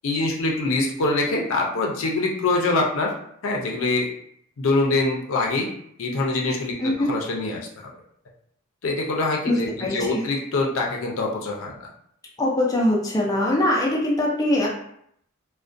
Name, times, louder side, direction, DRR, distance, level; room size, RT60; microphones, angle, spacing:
voice 1, 0.0-3.1 3.4-4.1 4.6-5.7 6.0-7.9 8.8-11.9, left 2 dB, 80° left, -1 dB, 0.5 m, -24 dB
voice 2, 6.8-7.1 9.5-10.2 12.4-14.7, left 1 dB, 20° left, -3 dB, 0.4 m, -22 dB
2.4 x 2.1 x 2.5 m, 0.70 s
head